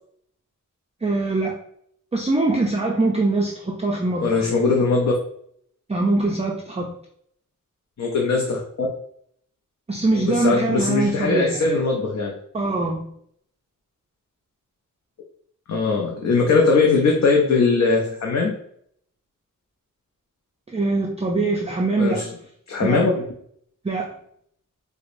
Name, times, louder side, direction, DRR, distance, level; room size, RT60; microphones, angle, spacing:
voice 1, 1.0-1.6 2.1-4.6 5.9-6.9 9.9-11.8 12.5-13.1 20.7-22.2 22.8-23.0 23.8-24.1, right 2 dB, 20° right, -1 dB, 0.4 m, -23 dB
voice 2, 4.2-5.1 8.0-8.9 10.1-12.3 15.7-18.6 22.0-22.3 22.7-23.2, left 4 dB, 60° left, 0 dB, 0.5 m, -20 dB
4.7 x 2.0 x 2.5 m, 0.67 s
wide cardioid pair, 115°, 32 cm